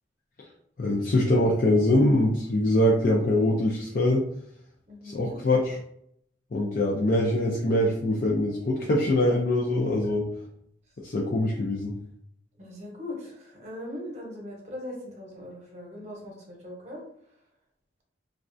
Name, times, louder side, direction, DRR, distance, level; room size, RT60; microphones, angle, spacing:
voice 1, 0.8-4.3 5.0-5.8 6.5-10.2 11.0-11.9, left 1 dB, 50° left, -3 dB, 0.4 m, -23 dB
voice 2, 4.9-5.4 12.6-17.0, left 1 dB, 40° right, -2 dB, 0.9 m, -40 dB
3.1 x 2.3 x 2.5 m, 0.70 s
head